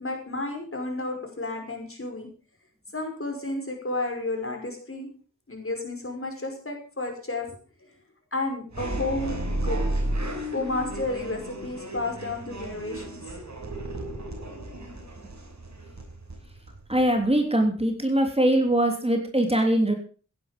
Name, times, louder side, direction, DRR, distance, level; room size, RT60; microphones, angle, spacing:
voice 1, 0.0-2.3 2.9-5.1 5.5-7.9 8.3-9.4 9.6-9.8 10.5-13.2, left 2 dB, 45° left, 3 dB, 5.7 m, -32 dB
sound 1, 8.7-17.3, right 1 dB, 65° right, 5.6 m, -33 dB
voice 2, 16.9-19.9, right 1 dB, 20° right, 3 dB, 3.3 m, -22 dB
16.0 x 11.0 x 5.3 m, 0.39 s
wide cardioid pair, 80°, 30 cm